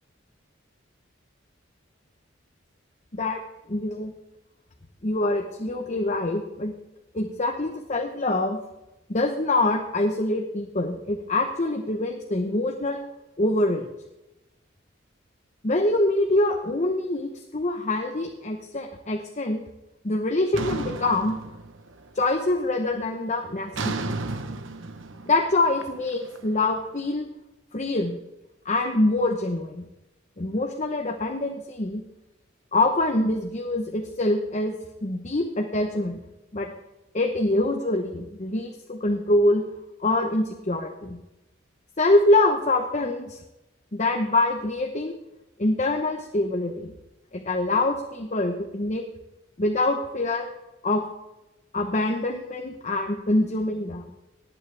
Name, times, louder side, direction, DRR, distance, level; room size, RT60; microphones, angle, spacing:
voice 1, 3.7-4.1 5.0-6.7 7.1-8.6 9.1-13.0 13.4-13.9 15.6-19.6 20.0-21.4 22.1-24.2 25.3-27.3 27.7-28.2 28.6-29.8 30.4-32.0 32.7-34.7 35.0-36.2 36.5-36.7 37.1-39.6 40.0-41.2 42.0-43.4 43.9-45.1 45.6-46.9 47.3-49.0 49.6-50.5 50.8-51.0 51.7-54.0, left 2 dB, 35° left, 3 dB, 1.0 m, -25 dB
sound 1, 20.5-22.1 22.4-22.9 23.7-26.8, right 3 dB, 70° right, 1.0 m, -33 dB
18.5 x 9.5 x 3.4 m, 0.96 s
head